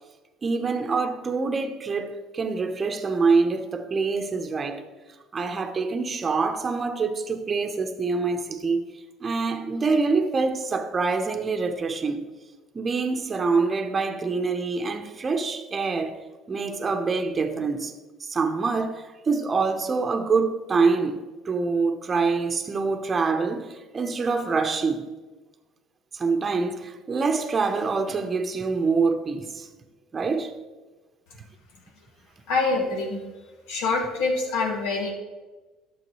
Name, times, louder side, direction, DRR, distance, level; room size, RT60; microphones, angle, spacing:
voice 1, 0.4-4.9 5.3-8.8 9.2-12.2 12.7-16.2 16.5-17.9 18.2-25.1 26.1-29.7 30.1-30.5 31.4-31.5, right 4 dB, 30° right, 0.9 m, -25 dB
voice 2, 32.5-33.2 33.7-35.1, left 3 dB, 80° left, 2.1 m, -25 dB
12.0 x 7.0 x 3.2 m
supercardioid pair, 100°, 0 cm